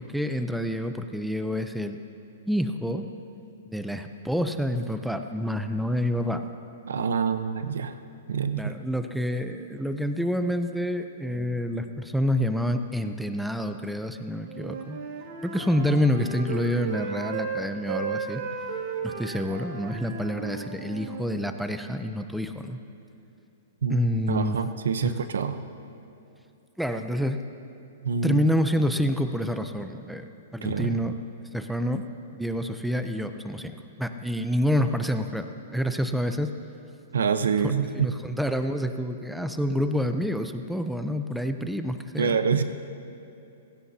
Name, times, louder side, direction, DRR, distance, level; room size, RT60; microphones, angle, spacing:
voice 1, 0.0-2.0 2.5-3.0 3.7-6.4 8.6-15.0 15.4-18.4 19.0-22.8 23.9-24.6 25.0-25.1 26.8-27.4 28.2-31.1 31.5-32.0 32.3-36.5 37.9-42.4, equal, ahead, 7 dB, 0.7 m, -28 dB
voice 2, 6.9-8.0 8.3-8.7 23.8-25.6 28.0-28.5 30.6-31.0 37.1-38.1 42.2-42.6, right 6 dB, 85° right, 10 dB, 0.9 m, -26 dB
Wind instrument woodwind instrument, 14.5-21.3, right 5 dB, 60° right, 2.4 m, -35 dB
29.0 x 16.0 x 2.9 m, 2.8 s
hypercardioid pair, 140°, 0 cm